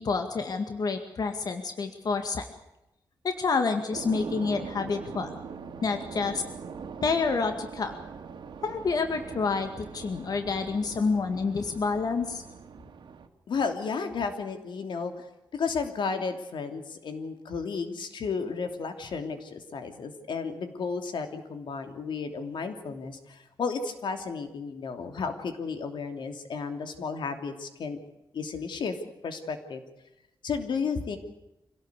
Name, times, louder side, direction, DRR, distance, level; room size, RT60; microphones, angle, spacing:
voice 1, 0.0-2.5 3.2-5.3 5.8-6.4 7.0-8.0 8.6-12.4, left 4 dB, 55° left, 7 dB, 2.1 m, -28 dB
sound 1, 3.9-13.3, right 6 dB, 80° right, 2.2 m, -42 dB
voice 2, 13.5-15.2 15.5-28.0 28.3-29.0 29.2-29.8 30.4-31.2, left 5 dB, 90° left, 7 dB, 3.0 m, -33 dB
26.0 x 17.5 x 8.3 m, 0.92 s
wide cardioid pair, 145°, 8 cm